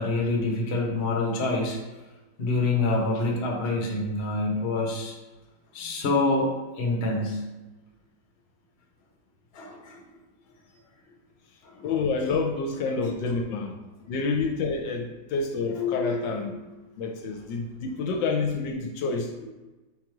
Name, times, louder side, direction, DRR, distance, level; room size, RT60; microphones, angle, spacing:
voice 1, 0.0-1.8 2.4-5.1 5.7-6.5 6.8-7.4 9.5-10.0 11.6-11.9 15.5-16.2 16.5-16.6 19.4-19.5, left 2 dB, 50° left, -1 dB, 0.8 m, -26 dB
voice 2, 11.8-13.8 14.1-16.6 17.0-19.3, left 4 dB, 75° left, 3 dB, 1.2 m, -28 dB
3.9 x 3.0 x 4.5 m, 1.2 s
omnidirectional pair, 2.1 m